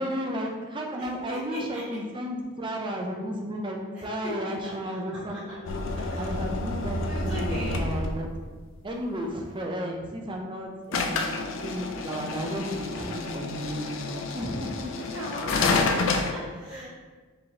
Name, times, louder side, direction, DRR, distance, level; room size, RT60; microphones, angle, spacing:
voice 1, 0.0-5.7 6.2-8.3 8.8-14.9 16.6-16.9, equal, 20° right, 1 dB, 0.4 m, -33 dB
voice 2, 1.0-1.8 3.9-5.4 5.9-6.3 7.0-7.8 15.1-16.9, equal, 5° right, -14 dB, 1.2 m, -38 dB
sound 1, 5.7-8.4 10.9-16.3, left 3 dB, 60° left, 0.4 m, -29 dB
4.5 x 3.2 x 2.8 m, 1.4 s
head